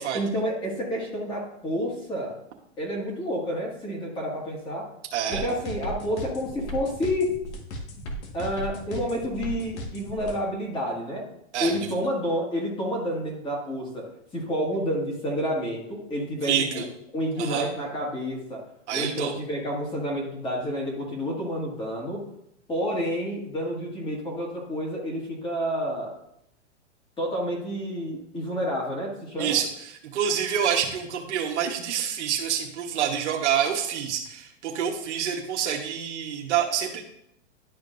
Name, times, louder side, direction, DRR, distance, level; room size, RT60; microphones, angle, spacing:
voice 1, 0.1-2.4 2.8-4.9 5.3-7.3 8.3-11.3 11.6-16.8 17.1-22.2 22.7-26.1 27.2-29.6, equal, 15° left, -2 dB, 1.8 m, -29 dB
voice 2, 5.1-5.4 11.5-11.7 16.4-16.8 17.4-17.7 18.9-19.3 29.4-29.7 30.1-37.0, right 8 dB, 75° right, -1 dB, 1.3 m, -27 dB
sound 1, 5.3-10.4, equal, 70° left, 1.7 m, -36 dB
11.5 x 5.2 x 2.6 m, 0.76 s
hypercardioid pair, 145°, 35 cm